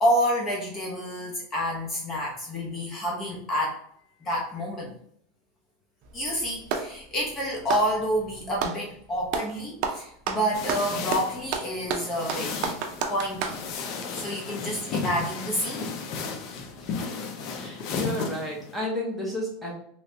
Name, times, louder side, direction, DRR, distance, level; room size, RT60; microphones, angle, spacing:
voice 1, 0.0-3.8 4.2-4.9 6.1-12.8 13.1-13.5 14.1-16.4, equal, 20° left, -2 dB, 0.9 m, -28 dB
Clapping, 6.0-7.0 7.6-8.8 9.3-9.5 9.8-13.6, right 6 dB, 50° right, 0.5 m, -31 dB
sound 1, 10.5-18.9, left 4 dB, 45° left, 0.6 m, -34 dB
voice 2, 17.5-19.7, left 1 dB, 5° right, -4 dB, 1.0 m, -32 dB
3.2 x 3.0 x 2.8 m, 0.67 s
supercardioid pair, 150°, 0 cm